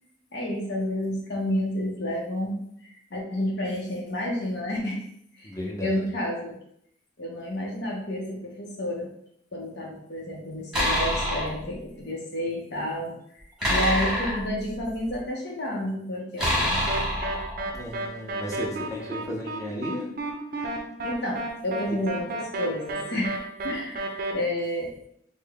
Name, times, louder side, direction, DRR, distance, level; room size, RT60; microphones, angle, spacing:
voice 1, 0.3-5.0 5.3-5.5 5.8-6.6 7.2-9.1 9.5-13.4 13.7-16.8 21.0-24.9, left 1 dB, 65° left, -2 dB, 0.8 m, -30 dB
voice 2, 5.4-6.1 17.7-20.1 20.5-20.9 21.9-22.0, equal, 20° left, -1 dB, 0.7 m, -35 dB
sound 1, 10.7-11.6 13.6-15.1 16.4-17.8, equal, 5° right, 1.2 m, -26 dB
sound 2, 16.9-24.3, right 2 dB, 55° right, 0.5 m, -32 dB
3.8 x 2.1 x 3.4 m, 0.70 s
head